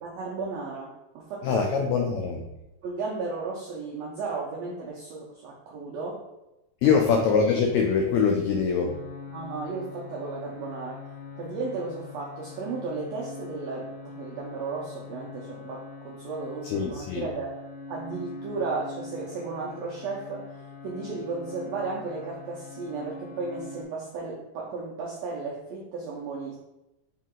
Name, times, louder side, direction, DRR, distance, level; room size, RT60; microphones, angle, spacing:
voice 1, 0.0-1.7 2.8-6.2 6.8-7.0 9.3-11.1 11.4-17.5 17.9-20.4 20.8-26.6, right 4 dB, 85° right, -3 dB, 1.5 m, -34 dB
voice 2, 1.4-2.5 6.8-8.9 16.6-17.3, left 6 dB, 90° left, 1 dB, 1.6 m, -23 dB
sound 1, 8.8-23.8, left 4 dB, 45° left, 2.0 m, -43 dB
4.9 x 2.8 x 3.6 m, 0.95 s
omnidirectional pair, 3.7 m